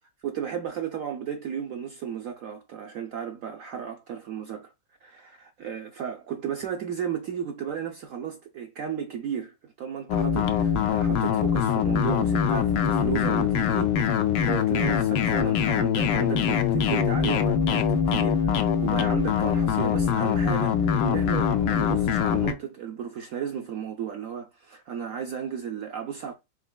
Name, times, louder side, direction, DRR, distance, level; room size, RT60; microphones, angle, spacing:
voice 1, 0.2-4.7 5.0-26.3, right 8 dB, 70° right, 0.8 m, -34 dB
sound 1, 10.1-22.5, left 7 dB, 80° left, 1.2 m, -23 dB
4.5 x 3.9 x 2.2 m
omnidirectional pair, 1.9 m